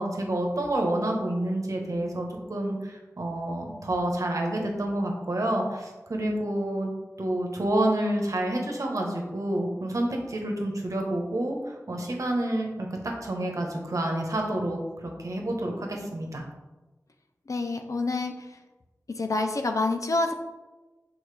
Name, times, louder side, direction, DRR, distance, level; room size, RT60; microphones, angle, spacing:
voice 1, 0.0-6.9 7.2-12.9 13.2-16.4, right 1 dB, 70° right, 1 dB, 1.1 m, -28 dB
voice 2, 17.5-18.5 19.2-20.3, left 3 dB, 65° left, 5 dB, 0.6 m, -27 dB
6.4 x 4.4 x 3.4 m, 1.2 s
wide cardioid pair, 65°, 6 cm